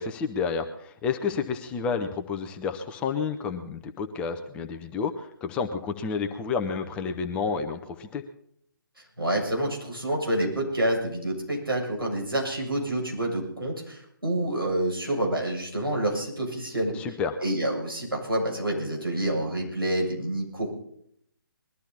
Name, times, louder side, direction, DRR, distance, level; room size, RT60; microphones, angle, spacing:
voice 1, 0.0-8.2 16.9-17.4, left 5 dB, 10° left, 6 dB, 0.6 m, -30 dB
voice 2, 9.2-16.9 17.4-20.8, right 1 dB, 85° right, -1 dB, 7.4 m, -28 dB
21.0 x 13.0 x 4.2 m, 0.69 s
figure-of-eight pair, 140°, 12 cm